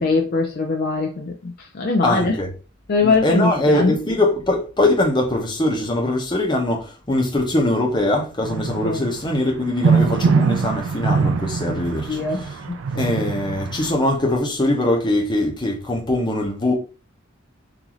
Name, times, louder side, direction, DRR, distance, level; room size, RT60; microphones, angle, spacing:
voice 1, 0.0-2.3 2.9-3.9 8.8-9.0 11.7-11.8 12.1-13.2, left 3 dB, 45° left, 0.5 m, -22 dB
voice 2, 2.0-2.5 3.0-12.6 13.0-16.7, left 1 dB, 20° left, 0.9 m, -22 dB
sound 1, 8.4-13.9, right 5 dB, 70° right, 0.4 m, -22 dB
3.9 x 2.6 x 2.9 m
head